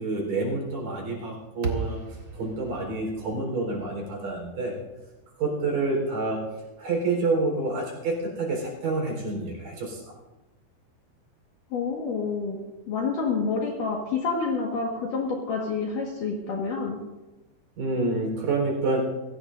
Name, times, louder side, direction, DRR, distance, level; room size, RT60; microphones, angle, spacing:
voice 1, 0.0-2.0 2.3-4.8 5.4-6.4 6.8-10.0 17.8-19.0, right 3 dB, 60° right, 0 dB, 5.8 m, -28 dB
sound 1, 1.6-5.9, right 4 dB, 40° right, 1.4 m, -37 dB
voice 2, 11.7-17.0, left 4 dB, 60° left, -1 dB, 3.0 m, -28 dB
24.0 x 16.0 x 2.6 m, 1.1 s
omnidirectional pair, 4.4 m